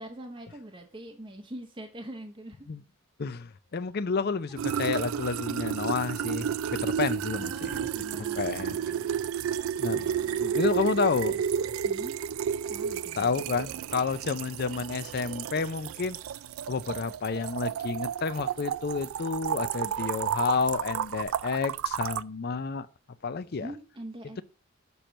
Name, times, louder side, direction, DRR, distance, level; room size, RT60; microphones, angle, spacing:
voice 1, 0.0-2.7 7.3-9.1 11.8-12.2 12.7-13.3 23.6-24.4, right 1 dB, 25° right, 0.7 m, -43 dB
voice 2, 3.2-7.9 8.4-9.0 9.8-11.4 13.1-16.2 16.7-22.9 23.2-23.7, left 5 dB, 50° left, 0.5 m, -30 dB
sound 1, 4.6-22.2, right 8 dB, 85° right, 0.3 m, -31 dB
6.9 x 4.5 x 6.4 m
head